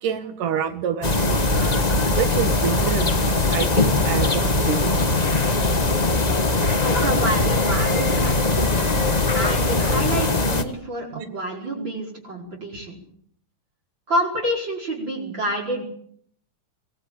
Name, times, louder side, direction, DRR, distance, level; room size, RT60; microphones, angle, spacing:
voice 1, 0.0-5.0 11.1-11.3, right 8 dB, 85° right, 9 dB, 3.3 m, -28 dB
sound 1, 1.0-10.6, left 2 dB, 45° left, 0.5 m, -20 dB
voice 2, 6.8-8.8 9.3-13.0 14.1-15.8, right 1 dB, 35° right, 0 dB, 5.5 m, -28 dB
23.0 x 19.0 x 8.9 m, 0.65 s
omnidirectional pair, 3.6 m